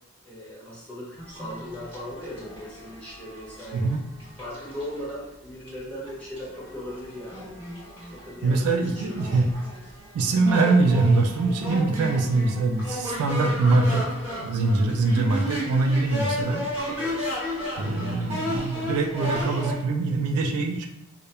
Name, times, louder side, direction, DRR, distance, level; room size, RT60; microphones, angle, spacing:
voice 1, 0.2-3.9 4.4-7.5 8.1-9.4 16.8-17.3, left 1 dB, 5° left, -9 dB, 0.9 m, -38 dB
sound 1, 1.2-5.1 5.7-5.8 6.0-19.7, equal, 25° right, 1.2 m, -34 dB
voice 2, 8.4-9.5 10.1-14.1 14.3-16.6 17.8-20.9, right 3 dB, 80° right, 5 dB, 0.3 m, -23 dB
2.3 x 2.1 x 2.9 m, 0.80 s
head